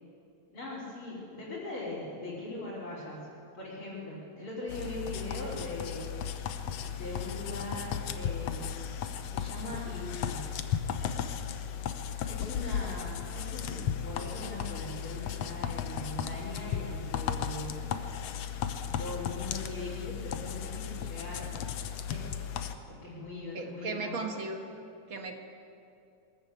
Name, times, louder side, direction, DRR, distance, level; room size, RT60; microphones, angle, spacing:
voice 1, 0.5-3.3 3.5-6.2 7.0-8.9 9.2-10.6 12.3-17.9 19.0-21.5 22.1-22.3 22.9-24.3, left 2 dB, 45° left, -9 dB, 4.1 m, -40 dB
sound 1, 4.7-22.7, left 8 dB, 70° left, 1.9 m, -35 dB
voice 2, 23.5-24.6 25.1-25.3, right 3 dB, 50° right, 3 dB, 1.9 m, -36 dB
22.5 x 14.0 x 8.4 m, 2.6 s
omnidirectional pair, 3.3 m